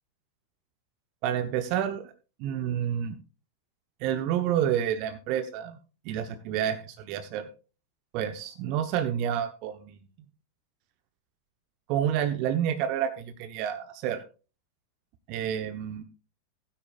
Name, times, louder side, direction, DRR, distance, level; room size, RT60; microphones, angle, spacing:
voice 1, 1.2-2.1 2.4-3.2 4.0-5.8 6.0-7.5 8.1-10.0 11.9-14.2 15.3-16.0, right 10 dB, 45° right, 9 dB, 1.0 m, -29 dB
16.5 x 10.0 x 2.5 m, 0.34 s
figure-of-eight pair, 90°, 0 cm